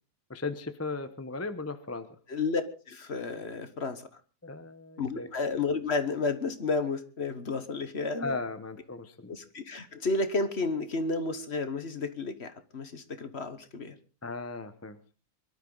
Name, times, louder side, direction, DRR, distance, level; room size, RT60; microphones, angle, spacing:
voice 1, 0.3-2.1 4.4-5.3 8.2-9.3 14.2-15.0, left 3 dB, 10° left, 10 dB, 0.8 m, -36 dB
voice 2, 2.3-2.6 2.9-4.1 5.0-8.4 9.3-14.0, left 3 dB, 45° left, 11 dB, 1.5 m, -31 dB
23.5 x 12.5 x 4.0 m, 0.36 s
omnidirectional pair, 1.7 m